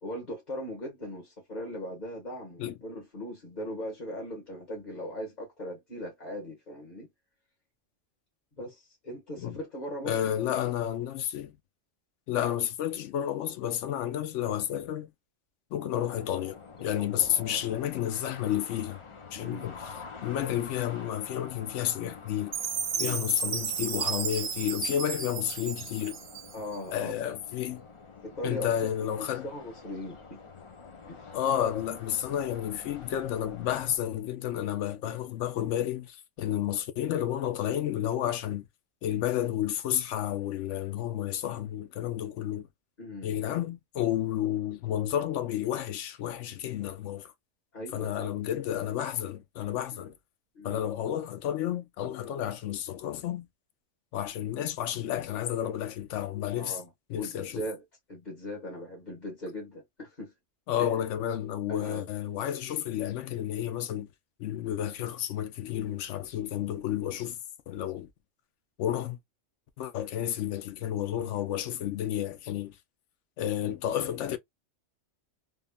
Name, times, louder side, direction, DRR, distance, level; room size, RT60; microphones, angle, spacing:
voice 1, 0.0-7.1 8.6-10.1 17.0-17.7 19.3-19.7 22.9-23.2 26.5-27.2 28.2-30.4 31.0-31.3 43.0-43.3 47.7-48.3 49.9-50.1 50.5-50.8 56.6-56.9 57.2-57.8 58.1-60.3 60.8-60.9 61.7-62.1, equal, 40° left, 1.3 m, -39 dB
voice 2, 10.0-11.5 12.3-15.1 15.7-19.0 19.3-19.8 20.2-22.5 23.0-26.2 26.9-27.8 28.4-29.5 31.3-38.6 39.0-42.7 43.2-47.3 47.9-50.1 50.6-53.5 54.1-56.8 57.1-57.6 60.7-64.1 64.4-67.4 67.7-68.1 68.8-69.2 69.8-72.7 73.4-74.4, left 11 dB, 80° left, 0.9 m, -31 dB
sound 1, 16.1-34.0, left 5 dB, 55° left, 0.3 m, -48 dB
Chime, 22.5-26.8, right 7 dB, 60° right, 0.8 m, -33 dB
3.5 x 2.0 x 2.2 m
omnidirectional pair, 1.2 m